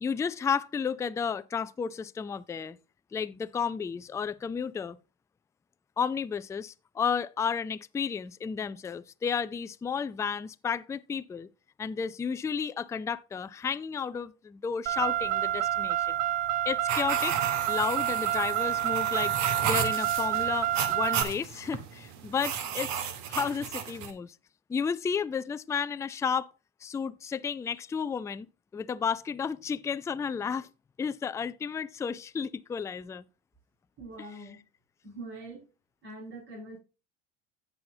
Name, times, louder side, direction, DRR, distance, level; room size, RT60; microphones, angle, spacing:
voice 1, 0.0-2.8 3.1-5.0 6.0-11.5 11.8-16.2 16.7-17.4 17.7-19.4 19.6-24.4 24.7-26.5 26.8-28.5 28.7-30.7 31.0-33.2 34.2-34.5, left 6 dB, 10° left, 0.3 m, -32 dB
Car, 14.9-21.2, right 12 dB, 70° right, 0.8 m, -28 dB
sound 1, 16.9-24.1, right 8 dB, 55° right, 1.7 m, -34 dB
voice 2, 34.0-34.6 35.0-35.6 36.0-36.8, right 2 dB, 35° right, 5.7 m, -43 dB
16.0 x 5.6 x 2.7 m
hypercardioid pair, 85°, 35 cm